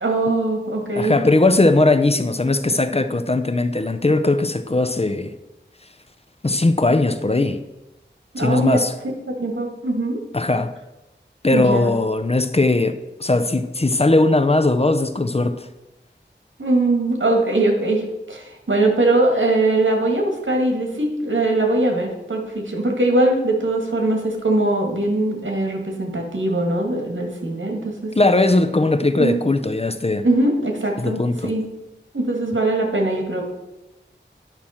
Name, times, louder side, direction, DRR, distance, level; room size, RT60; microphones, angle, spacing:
voice 1, 0.0-1.2 8.3-8.8 9.4-10.2 11.5-11.9 16.6-28.1 29.2-29.4 30.2-31.6 32.1-33.4, right 2 dB, 80° right, 1.9 m, -21 dB
voice 2, 1.0-5.3 6.4-7.6 8.4-8.9 10.3-10.7 11.4-15.7 28.2-30.3 31.0-31.5, left 2 dB, 30° left, 0.6 m, -19 dB
10.5 x 6.0 x 4.3 m
wide cardioid pair, 50°, 20 cm